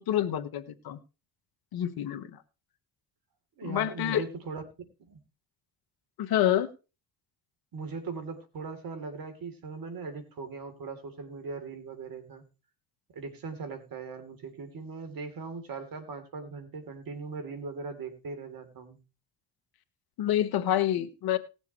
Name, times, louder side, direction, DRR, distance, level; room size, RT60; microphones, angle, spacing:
voice 1, 0.1-1.0 1.7-2.4 3.6-4.2 6.2-6.7 20.2-21.4, left 11 dB, 65° left, 11 dB, 1.5 m, -27 dB
voice 2, 3.6-4.6 5.1-5.2 7.7-12.4 13.1-19.0, right 4 dB, 60° right, 8 dB, 3.4 m, -39 dB
19.0 x 7.1 x 3.1 m, 0.30 s
hypercardioid pair, 60°, 39 cm